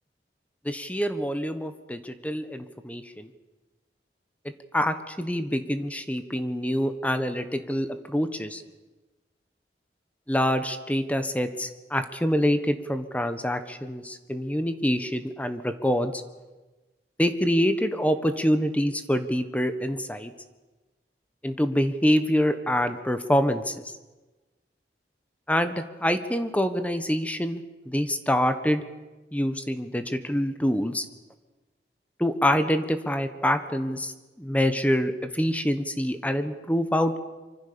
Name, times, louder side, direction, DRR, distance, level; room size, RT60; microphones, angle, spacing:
voice 1, 0.6-3.3 4.7-8.6 10.3-16.2 17.2-20.3 21.4-23.8 25.5-28.8 29.3-31.0 32.2-34.1 34.4-37.2, equal, 10° left, 9 dB, 1.3 m, -26 dB
25.0 x 24.5 x 7.0 m, 1.2 s
head